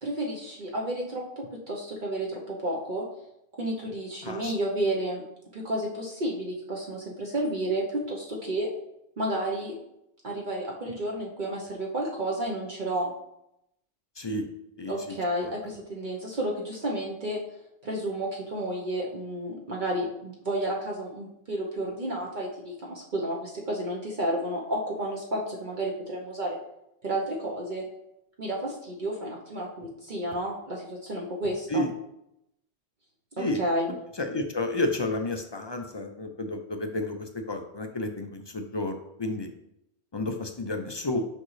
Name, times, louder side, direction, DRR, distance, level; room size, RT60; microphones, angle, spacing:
voice 1, 0.0-3.0 3.6-5.2 5.5-8.7 9.2-9.7 10.2-13.1 14.9-17.4 17.8-26.6 27.0-27.8 28.4-31.9 33.4-33.9, right 1 dB, 50° right, -3 dB, 1.0 m, -31 dB
voice 2, 4.2-4.5 14.2-14.4 14.8-14.9 15.4-15.5 31.7-31.9 33.4-33.6 34.2-39.5 40.1-41.2, left 2 dB, 35° left, 5 dB, 0.4 m, -31 dB
6.4 x 5.2 x 3.2 m, 0.81 s
omnidirectional pair, 1.1 m